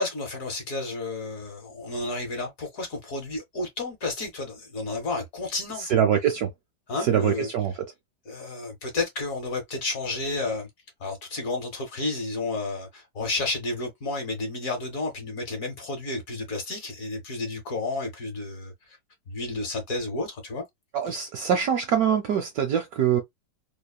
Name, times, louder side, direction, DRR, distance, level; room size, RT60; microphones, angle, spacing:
voice 1, 0.0-6.0 6.9-7.5 8.3-10.7 11.0-19.0 19.3-20.6 21.1-21.2, left 2 dB, 55° left, 1.1 m, -31 dB
voice 2, 5.9-6.5 7.1-7.7 20.9-23.2, right 8 dB, 75° right, 0.9 m, -23 dB
3.0 x 2.0 x 2.3 m
omnidirectional pair, 2.0 m